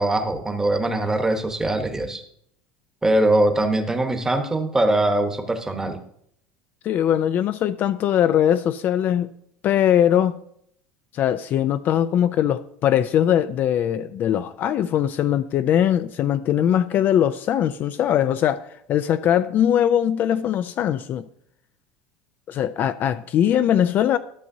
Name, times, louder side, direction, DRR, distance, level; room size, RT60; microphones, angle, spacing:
voice 1, 0.0-2.2 3.0-6.0, right 1 dB, 10° right, 1.0 m, -22 dB
voice 2, 6.8-9.3 9.6-10.4 11.1-21.3 22.5-24.2, left 10 dB, 45° left, 0.3 m, -21 dB
12.5 x 6.6 x 2.7 m
supercardioid pair, 115°, 4 cm